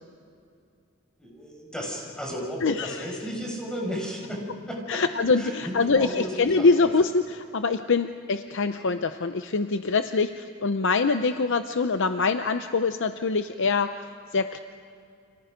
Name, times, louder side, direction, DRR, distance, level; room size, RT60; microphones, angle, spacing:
voice 1, 1.2-5.0 5.4-6.9, equal, 5° left, -2 dB, 5.5 m, -34 dB
voice 2, 2.6-3.1 4.9-13.9 14.3-14.6, left 4 dB, 60° left, 8 dB, 0.7 m, -24 dB
30.0 x 27.5 x 5.2 m, 2.4 s
head